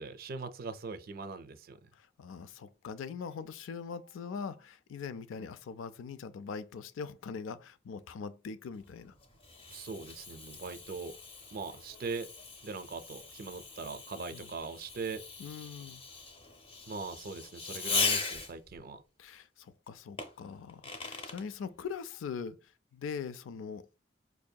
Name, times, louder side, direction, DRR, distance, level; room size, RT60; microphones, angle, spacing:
voice 1, 0.0-1.9 9.7-11.1 11.5-12.3 12.6-15.2 16.9-19.0, right 4 dB, 50° right, 0.4 m, -41 dB
voice 2, 1.9-9.1 14.3-14.5 15.4-16.0 19.2-24.0, left 6 dB, 90° left, 0.4 m, -42 dB
Fireworks, 8.8-18.8 20.2-21.5, left 4 dB, 30° left, 0.7 m, -39 dB
4.7 x 2.7 x 2.2 m
head